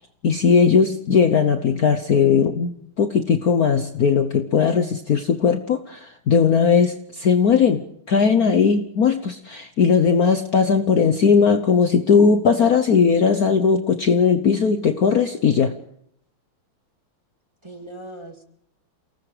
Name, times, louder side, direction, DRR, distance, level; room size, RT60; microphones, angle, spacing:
voice 1, 0.2-15.7, left 6 dB, 55° left, 7 dB, 1.3 m, -18 dB
voice 2, 10.7-11.4 17.6-18.4, right 1 dB, 15° right, 3 dB, 2.3 m, -41 dB
29.0 x 19.0 x 5.0 m, 0.72 s
omnidirectional pair, 2.3 m